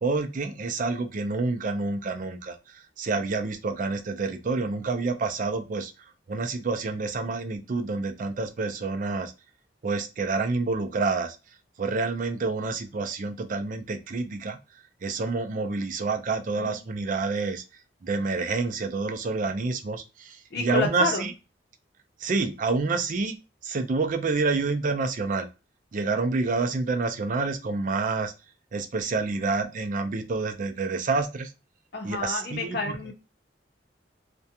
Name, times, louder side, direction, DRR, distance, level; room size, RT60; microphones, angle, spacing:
voice 1, 0.0-2.6 3.0-5.9 6.3-9.3 9.8-11.4 11.8-14.6 15.0-17.6 18.0-21.3 22.2-23.4 23.6-25.5 25.9-28.3 28.7-31.5 32.0-32.8, right 3 dB, 45° right, 6 dB, 0.4 m, -28 dB
voice 2, 20.5-21.2 31.9-33.1, left 4 dB, 60° left, 3 dB, 0.7 m, -29 dB
2.4 x 2.2 x 2.7 m, 0.28 s
head